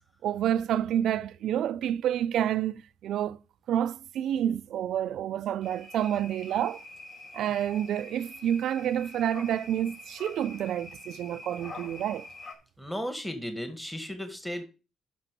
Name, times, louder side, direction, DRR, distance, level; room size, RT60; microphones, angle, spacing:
voice 1, 0.2-3.4 3.7-6.8 7.3-12.3, right 10 dB, 75° right, 0.4 m, -29 dB
sound 1, 5.6-12.5, left 2 dB, 50° left, 4.8 m, -46 dB
voice 2, 12.8-14.6, equal, 5° left, 1.9 m, -35 dB
8.2 x 6.2 x 6.8 m
cardioid pair, 90°, 0 cm